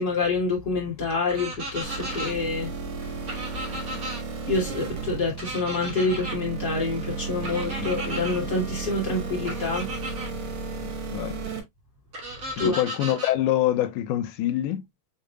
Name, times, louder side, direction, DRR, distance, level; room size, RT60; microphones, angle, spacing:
voice 1, 0.0-2.7 3.0-3.4 4.5-9.9 10.5-10.9 12.6-12.8, left 3 dB, 30° left, 2.3 m, -27 dB
sound 1, 1.3-2.3 3.3-4.2 5.4-6.4 7.4-8.4 9.4-10.3 12.1-13.3, right 1 dB, 75° right, 0.8 m, -35 dB
sound 2, 1.8-11.6, right 4 dB, 55° right, 1.7 m, -34 dB
voice 2, 10.8-11.4 12.6-14.8, left 13 dB, 80° left, 1.9 m, -25 dB
6.7 x 3.6 x 2.2 m
omnidirectional pair, 4.2 m